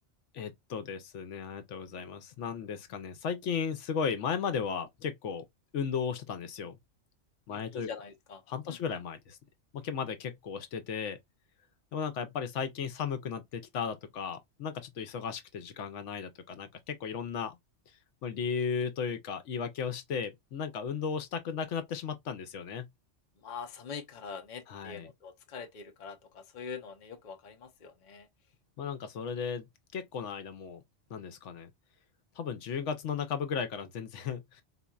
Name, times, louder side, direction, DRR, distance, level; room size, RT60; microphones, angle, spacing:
voice 1, 0.3-5.4 5.7-6.8 7.5-7.9 8.5-9.4 9.7-11.2 11.9-17.6 18.2-22.9 24.7-25.1 28.8-29.7 29.9-30.8 31.1-31.7 32.4-34.6, left 6 dB, 80° left, 1.0 m, -35 dB
voice 2, 7.5-9.0 23.4-28.3, left 6 dB, 45° left, 0.8 m, -44 dB
4.1 x 2.5 x 2.3 m
omnidirectional pair, 1.2 m